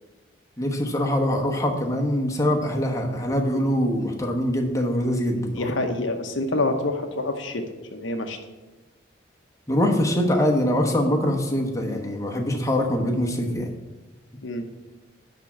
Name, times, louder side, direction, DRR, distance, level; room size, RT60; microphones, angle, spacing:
voice 1, 0.6-5.7 9.7-13.7, equal, 15° left, 0 dB, 1.1 m, -23 dB
voice 2, 5.5-7.6 7.9-8.4 14.4-14.7, left 2 dB, 75° left, 5 dB, 0.8 m, -27 dB
10.5 x 3.7 x 7.2 m, 1.1 s
head